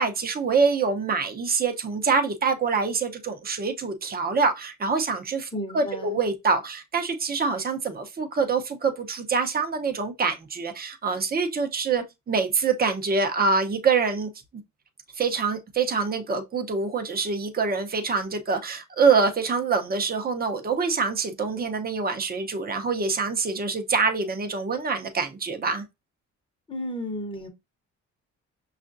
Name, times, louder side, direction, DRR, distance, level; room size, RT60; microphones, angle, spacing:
voice 1, 0.0-14.3 15.1-25.8, right 4 dB, 30° right, 0.8 m, -25 dB
voice 2, 5.5-6.2 26.7-27.5, equal, 15° left, 1.0 m, -33 dB
5.5 x 2.4 x 2.6 m
cardioid pair, 90°, 30 cm